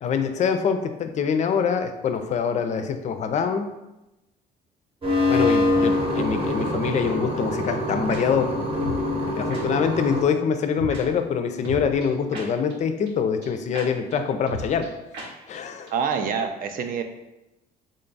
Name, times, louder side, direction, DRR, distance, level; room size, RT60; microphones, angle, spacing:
voice 1, 0.0-3.7 5.3-8.5 9.4-14.9 15.5-15.9, left 6 dB, 45° left, 8 dB, 0.4 m, -24 dB
sound 1, 5.0-10.2, left 1 dB, 35° right, 0.9 m, -24 dB
sound 2, 8.1-8.2 8.8-9.0 9.5-9.6 10.8-11.0 11.6-12.7 13.1-13.2 13.4-13.5 13.7-13.9 14.1-14.2 14.5-14.9 15.1-15.3 15.5-15.6 15.9-16.0, equal, 80° right, 0.8 m, -34 dB
voice 2, 15.9-17.0, right 6 dB, 55° right, 7 dB, 0.4 m, -26 dB
3.7 x 2.3 x 3.9 m, 0.95 s
cardioid pair, 110°, 17 cm